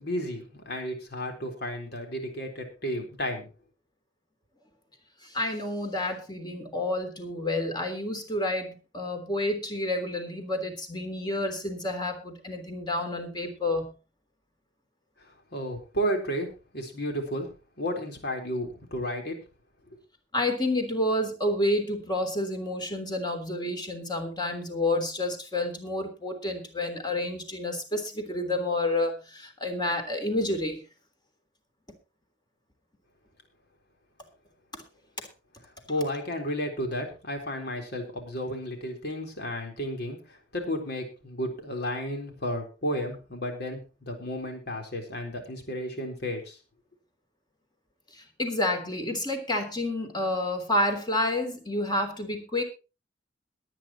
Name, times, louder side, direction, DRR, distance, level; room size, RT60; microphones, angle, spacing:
voice 1, 0.0-3.5 15.2-19.4 35.9-46.6, equal, 60° left, 3 dB, 4.0 m, -33 dB
voice 2, 5.2-13.9 20.3-30.8 48.1-52.6, left 1 dB, 25° left, 5 dB, 3.3 m, -29 dB
22.0 x 9.3 x 3.0 m, 0.31 s
head